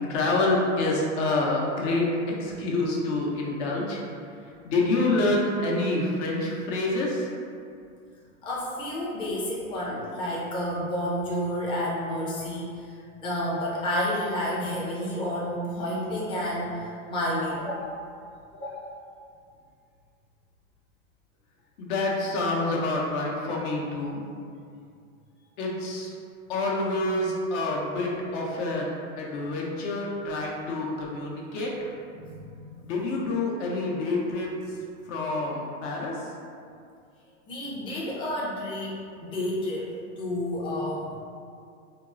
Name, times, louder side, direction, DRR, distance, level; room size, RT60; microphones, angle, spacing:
voice 1, 0.1-4.0 4.6-7.3 21.8-24.2 25.6-26.1 26.5-31.7 32.8-34.5 35.1-36.1, left 2 dB, 60° left, -2 dB, 0.8 m, -27 dB
voice 2, 8.4-18.0 18.5-19.0 30.5-30.6 32.2-32.9 37.5-41.2, left 1 dB, 15° left, -6 dB, 0.5 m, -30 dB
3.6 x 2.0 x 2.4 m, 2.3 s
hypercardioid pair, 120°, 40 cm